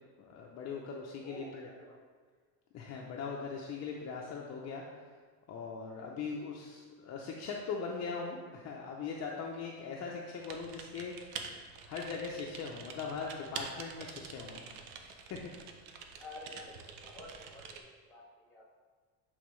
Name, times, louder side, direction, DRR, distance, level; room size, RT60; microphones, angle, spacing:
voice 1, 0.2-1.7 2.7-4.8 5.5-11.5 11.8-14.6 15.0-15.4 15.8-15.9, left 5 dB, 40° left, -1 dB, 0.6 m, -40 dB
voice 2, 1.2-2.0 16.2-18.9, left 1 dB, 5° left, -3 dB, 1.6 m, -51 dB
Typing, 10.4-17.8, right 6 dB, 85° right, 0.8 m, -46 dB
8.1 x 3.9 x 3.1 m, 1.5 s
cardioid pair, 135°, 40 cm